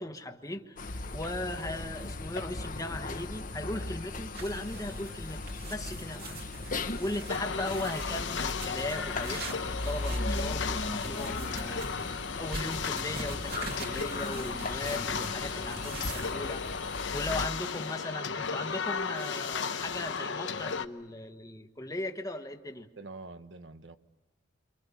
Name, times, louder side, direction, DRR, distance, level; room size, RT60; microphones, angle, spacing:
voice 1, 0.0-6.5 7.0-22.9, left 1 dB, 20° left, 4 dB, 1.2 m, -38 dB
sound 1, 0.8-17.5, left 2 dB, 45° left, 1.1 m, -38 dB
sound 2, 4.3-16.3, right 3 dB, 55° right, 2.5 m, -44 dB
sound 3, 7.3-20.8, left 6 dB, 80° left, 0.9 m, -35 dB
voice 2, 23.0-24.0, right 3 dB, 75° right, 9 dB, 1.3 m, -46 dB
29.0 x 24.5 x 7.1 m, 1.2 s
head